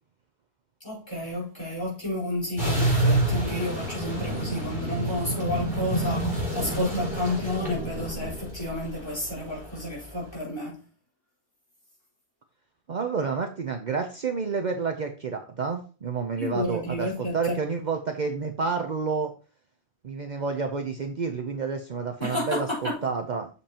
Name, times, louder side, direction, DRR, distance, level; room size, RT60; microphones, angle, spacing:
voice 1, 0.8-10.8 16.4-17.5 22.2-23.0, left 1 dB, 25° left, 4.8 m, -31 dB
sound 1, 2.6-9.9, right 1 dB, 45° left, 4.7 m, -28 dB
voice 2, 12.9-19.3 20.0-23.5, right 5 dB, 50° right, 0.8 m, -29 dB
8.2 x 7.0 x 2.9 m
omnidirectional pair, 1.1 m